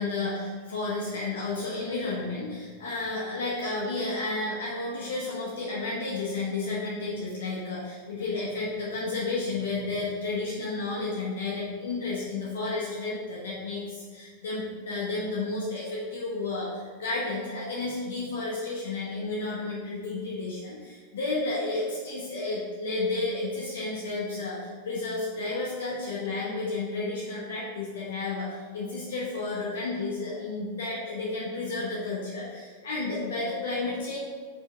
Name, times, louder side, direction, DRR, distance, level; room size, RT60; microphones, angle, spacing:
voice 1, 0.0-34.2, left 3 dB, 60° left, -5 dB, 1.1 m, -32 dB
5.1 x 4.3 x 4.5 m, 1.6 s
figure-of-eight pair, 90°, 0 cm